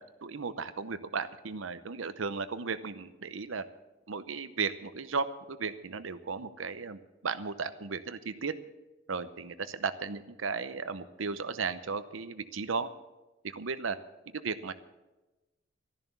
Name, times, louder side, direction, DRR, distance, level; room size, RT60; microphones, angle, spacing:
voice 1, 0.0-3.6 4.1-8.5 9.1-12.9 13.4-14.0 14.3-14.7, right 5 dB, 80° right, 12 dB, 0.8 m, -35 dB
13.0 x 11.0 x 6.9 m, 1.1 s
head